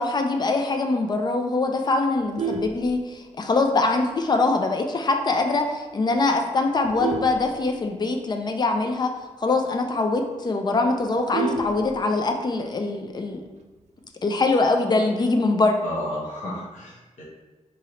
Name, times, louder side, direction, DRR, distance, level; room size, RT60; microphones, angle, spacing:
voice 1, 0.0-9.1 9.4-13.4 14.2-15.8, left 3 dB, 35° left, 4 dB, 0.4 m, -23 dB
Vehicle horn car horn honking, 2.1-3.6 4.0-4.3 4.6-4.7 5.1-5.2 5.5-5.9 6.4-8.3 8.6-8.7 9.0-9.1 9.5-9.6 10.0-10.1 10.3-12.4 13.6-14.0, right 4 dB, 65° right, 0.4 m, -32 dB
voice 2, 15.8-17.2, left 1 dB, 85° left, -7 dB, 1.0 m, -32 dB
3.7 x 3.1 x 2.9 m, 1.2 s
wide cardioid pair, 135°, 12 cm